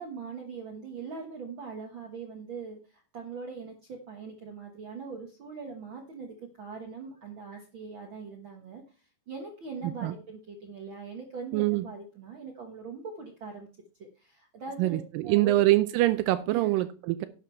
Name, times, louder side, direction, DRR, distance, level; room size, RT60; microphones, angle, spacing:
voice 1, 0.0-13.7 14.0-15.6 16.5-16.7, right 5 dB, 55° right, 1.4 m, -41 dB
voice 2, 11.5-11.9 14.8-17.3, right 17 dB, 85° right, 2.3 m, -24 dB
11.0 x 7.4 x 4.4 m
omnidirectional pair, 3.9 m